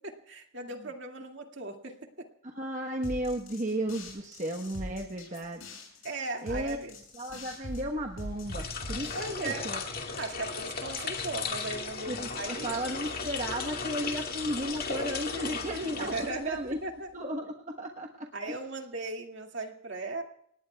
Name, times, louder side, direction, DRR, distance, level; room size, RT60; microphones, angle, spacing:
voice 1, 0.0-2.0 6.0-7.0 9.2-9.7 10.2-12.8 16.0-17.1 18.3-20.2, right 3 dB, 60° right, 3 dB, 2.2 m, -37 dB
voice 2, 2.4-5.6 6.4-6.8 7.1-9.8 12.1-16.8 17.1-18.6, right 1 dB, 35° right, 1 dB, 1.2 m, -34 dB
sound 1, 3.0-9.8, left 1 dB, 75° left, 7.2 m, -42 dB
sound 2, 8.4-16.8, left 4 dB, 45° left, 2.2 m, -36 dB
29.0 x 18.5 x 2.3 m, 0.69 s
head